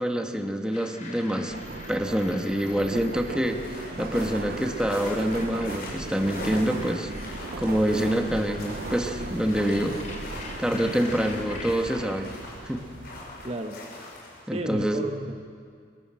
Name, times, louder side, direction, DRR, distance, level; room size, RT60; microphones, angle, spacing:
voice 1, 0.0-1.5 1.9-3.7 4.0-7.1 7.6-10.0 10.6-12.3 12.6-12.9 14.5-15.0, equal, 5° right, 3 dB, 1.4 m, -26 dB
sound 1, 0.7-11.8, left 3 dB, 45° left, 4.3 m, -44 dB
Subway metro underground, 1.5-13.5, right 3 dB, 55° right, 0.6 m, -38 dB
sound 2, 3.4-14.4, left 2 dB, 60° left, 6.6 m, -42 dB
voice 2, 13.4-13.8 14.5-15.5, right 1 dB, 35° right, 5 dB, 1.2 m, -33 dB
24.0 x 21.5 x 7.7 m, 2.1 s
head